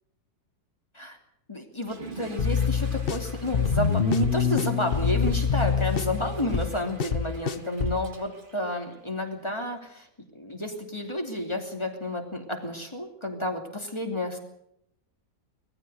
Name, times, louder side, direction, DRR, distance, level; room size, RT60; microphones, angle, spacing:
voice 1, 1.5-10.1 10.3-14.4, left 1 dB, 15° left, 3 dB, 2.9 m, -31 dB
Water / Toilet flush, 1.8-9.5, right 3 dB, 30° right, 1.9 m, -48 dB
sound 1, 2.4-8.0, left 6 dB, 40° left, 1.0 m, -26 dB
20.0 x 14.5 x 9.3 m, 0.77 s
omnidirectional pair, 1.7 m